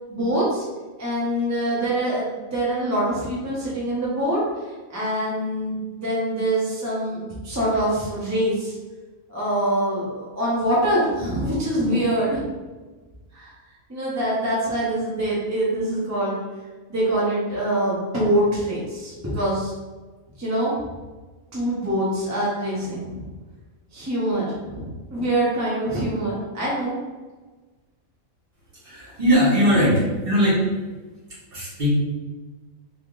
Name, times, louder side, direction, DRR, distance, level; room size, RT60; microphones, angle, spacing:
voice 1, 0.1-0.6 1.0-4.4 4.9-8.7 9.3-12.4 13.3-13.5 13.9-16.4 16.9-19.7 20.4-20.7 21.5-23.3 23.9-26.9, right 1 dB, 15° right, -7 dB, 0.6 m, -24 dB
voice 2, 28.8-30.7 31.5-31.9, equal, 45° right, -8 dB, 1.4 m, -20 dB
3.5 x 2.7 x 2.5 m, 1.3 s
omnidirectional pair, 1.5 m